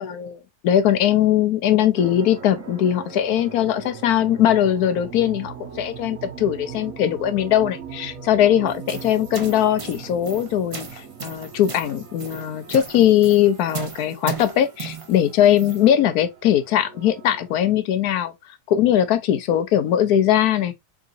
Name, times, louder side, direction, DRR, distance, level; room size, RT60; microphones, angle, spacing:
voice 1, 0.0-18.3 18.7-20.7, left 10 dB, 85° left, 1.2 m, -20 dB
sound 1, 2.0-17.5, right 6 dB, 60° right, 1.4 m, -40 dB
sound 2, 8.7-15.9, right 5 dB, 40° right, 0.4 m, -37 dB
3.9 x 3.7 x 2.5 m
omnidirectional pair, 1.6 m